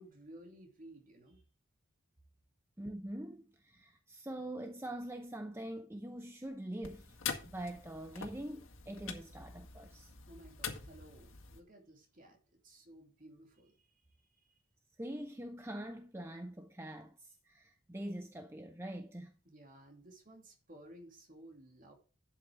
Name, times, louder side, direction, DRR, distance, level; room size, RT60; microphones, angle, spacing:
voice 1, 0.0-1.4 10.3-12.4 12.6-14.0 14.4-14.6 19.4-21.9, right 1 dB, 40° right, 2.6 m, -56 dB
voice 2, 2.8-7.2 7.4-10.1 15.0-19.3, right 1 dB, 10° right, 0.7 m, -44 dB
sound 1, 6.8-11.6, left 6 dB, 70° left, 2.0 m, -45 dB
12.0 x 8.0 x 3.6 m
head